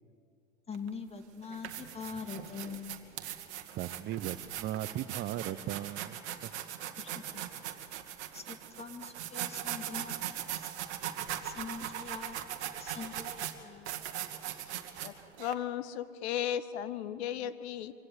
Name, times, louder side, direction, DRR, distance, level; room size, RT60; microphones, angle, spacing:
voice 1, 0.7-3.0 7.0-7.4 8.3-10.1 10.6-10.7 11.4-12.4 12.8-14.0, left 5 dB, 15° left, 7 dB, 1.9 m, -43 dB
sound 1, 0.7-0.9 1.4-15.5, right 11 dB, 60° right, 1.8 m, -40 dB
voice 2, 3.7-6.7, right 12 dB, 25° right, 16 dB, 0.8 m, -38 dB
voice 3, 15.4-17.9, left 10 dB, 55° left, 14 dB, 1.2 m, -35 dB
24.5 x 17.0 x 8.1 m, 2.5 s
figure-of-eight pair, 95°, 39 cm